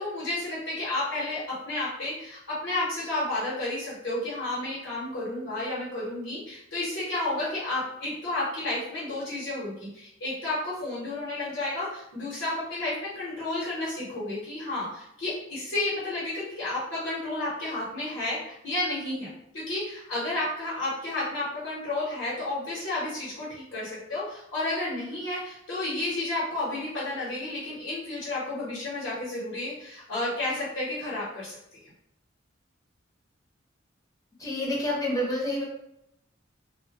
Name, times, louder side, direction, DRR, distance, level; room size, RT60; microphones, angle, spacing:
voice 1, 0.0-31.8, left 2 dB, 90° left, -8 dB, 0.9 m, -31 dB
voice 2, 34.4-35.6, left 1 dB, 20° left, -3 dB, 0.6 m, -28 dB
2.1 x 2.1 x 2.8 m, 0.79 s
head